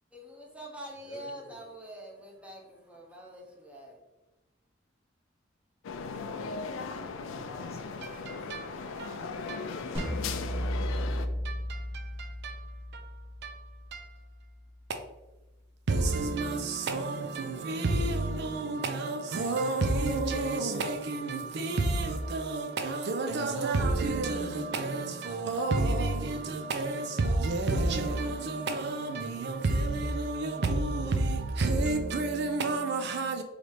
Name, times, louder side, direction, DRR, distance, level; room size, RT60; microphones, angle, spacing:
voice 1, 0.1-4.0, right 1 dB, 5° right, 0.8 m, -45 dB
voice 2, 1.0-1.6 6.2-7.2 7.4-8.2, left 1 dB, 35° left, 0.7 m, -53 dB
sound 1, 5.8-11.3, left 4 dB, 85° left, 0.4 m, -37 dB
voice 3, 8.0-10.3 11.4-14.2 14.9-15.0 15.9-33.4, right 2 dB, 60° right, 0.5 m, -30 dB
sound 2, 9.9-15.0, equal, 30° right, 1.4 m, -35 dB
4.0 x 3.2 x 3.2 m
head